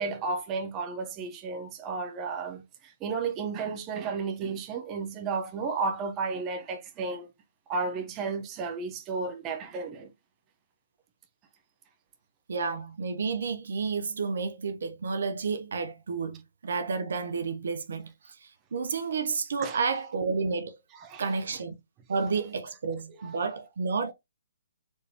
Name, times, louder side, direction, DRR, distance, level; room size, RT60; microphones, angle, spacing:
voice 1, 0.0-7.3 7.7-10.1 19.6-19.8 20.9-21.4 23.2-23.4, right 4 dB, 25° right, 0.9 m, -33 dB
voice 2, 12.5-18.3 18.7-20.8 21.2-21.8 22.1-24.1, right 4 dB, 65° right, 0.7 m, -31 dB
4.6 x 3.2 x 2.8 m
hypercardioid pair, 135°, 0 cm